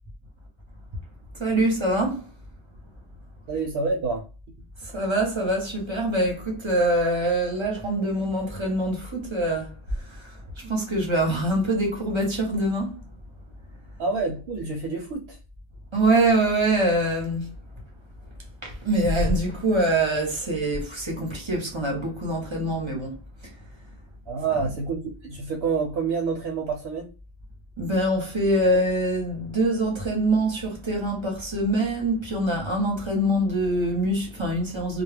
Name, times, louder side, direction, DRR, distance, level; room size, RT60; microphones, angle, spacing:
voice 1, 1.3-2.3 4.8-13.0 15.9-17.5 18.6-23.5 27.8-35.0, right 1 dB, 30° right, 0.6 m, -24 dB
voice 2, 3.5-4.3 14.0-15.4 24.3-27.1, right 4 dB, 70° right, 0.8 m, -28 dB
2.2 x 2.0 x 3.2 m
omnidirectional pair, 1.1 m